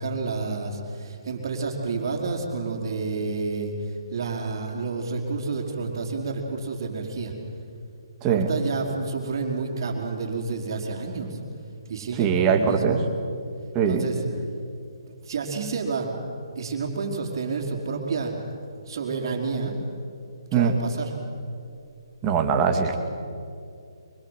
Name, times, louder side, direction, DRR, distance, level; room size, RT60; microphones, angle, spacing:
voice 1, 0.0-7.3 8.2-11.4 11.9-13.0 13.9-14.2 15.2-16.2 16.5-18.3 18.8-19.8 20.5-21.1, right 4 dB, 45° right, -6 dB, 4.4 m, -29 dB
voice 2, 8.2-8.5 12.2-13.0 13.7-14.1 20.5-20.8 22.2-23.0, right 6 dB, 20° right, 3 dB, 2.3 m, -21 dB
24.5 x 24.5 x 8.3 m, 2.4 s
hypercardioid pair, 160°, 3 cm